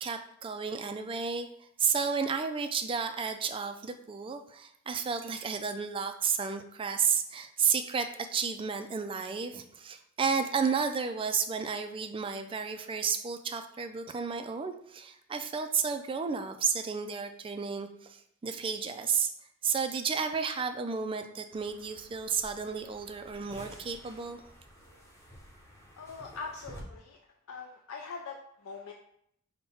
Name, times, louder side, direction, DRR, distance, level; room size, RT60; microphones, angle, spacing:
voice 1, 0.0-19.3 19.6-24.4, right 6 dB, 25° right, 7 dB, 0.3 m, -32 dB
sound 1, 21.5-26.8, equal, 15° left, 0.7 m, -52 dB
voice 2, 25.9-27.2 27.5-28.9, left 4 dB, 70° left, 1 dB, 0.4 m, -42 dB
5.4 x 2.2 x 4.2 m, 0.70 s
head